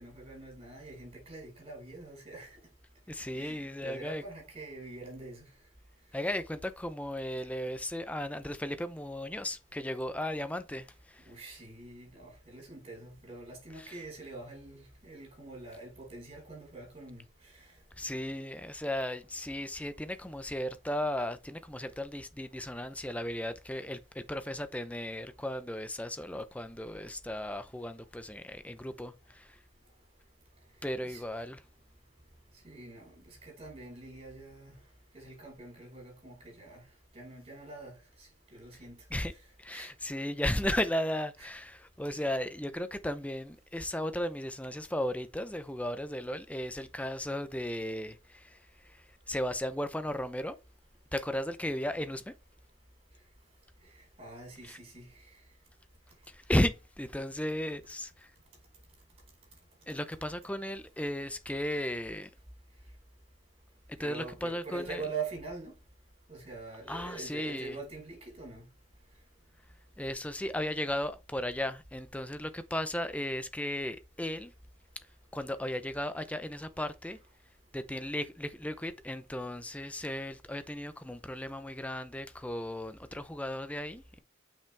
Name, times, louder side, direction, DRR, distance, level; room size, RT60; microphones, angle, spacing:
voice 1, 0.0-2.5 3.3-5.5 11.2-17.6 31.0-31.2 32.6-34.7 35.1-36.8 37.1-37.9 38.2-39.0 39.7-39.9 41.4-41.5 42.1-42.3 54.2-55.1 64.0-65.7 66.3-68.6, right 3 dB, 30° right, 4.7 m, -44 dB
voice 2, 3.1-4.2 6.1-11.3 13.8-13.9 17.9-29.6 30.8-31.6 39.1-39.3 39.6-50.6 51.1-52.3 54.6-54.8 56.3-58.3 59.9-62.3 63.9-65.0 66.9-67.8 70.0-74.5 75.3-77.2 77.7-84.2, left 1 dB, 5° left, 0.6 m, -35 dB
7.2 x 5.9 x 3.4 m
head